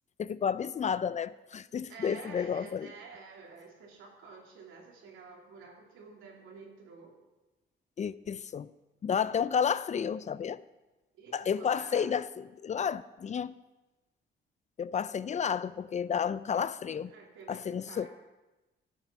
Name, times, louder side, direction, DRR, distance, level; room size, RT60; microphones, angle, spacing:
voice 1, 0.2-2.9 8.0-8.7 9.0-10.6 11.3-13.5 14.8-17.1 17.5-18.1, left 7 dB, 35° left, 0.4 m, -31 dB
voice 2, 1.9-7.2 11.1-12.1 17.1-18.1, right 4 dB, 85° right, 2.8 m, -50 dB
12.5 x 8.0 x 5.9 m
cardioid pair, 90°, 20 cm